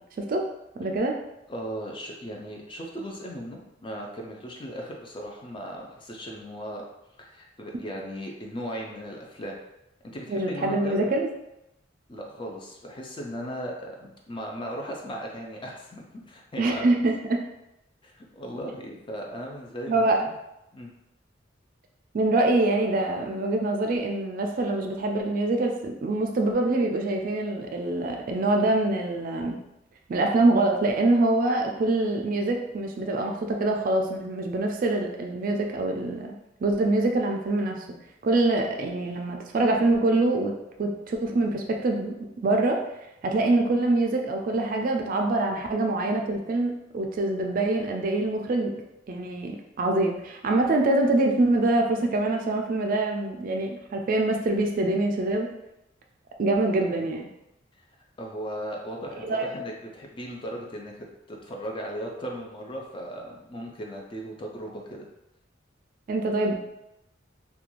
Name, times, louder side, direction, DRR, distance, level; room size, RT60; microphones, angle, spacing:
voice 1, 0.8-1.1 10.3-11.3 16.6-17.4 19.9-20.2 22.1-29.6 30.1-36.3 36.6-37.9 38.2-40.5 40.8-42.8 43.2-48.7 49.1-55.5 56.4-57.3 59.2-59.5 66.1-66.6, right 2 dB, 45° right, 2 dB, 0.3 m, -24 dB
voice 2, 1.5-6.8 7.2-9.6 10.1-11.1 12.1-17.1 18.0-20.3 20.7-20.9 56.8-57.1 58.2-65.1, equal, 25° left, 0 dB, 0.4 m, -37 dB
2.4 x 2.2 x 2.9 m, 0.87 s
head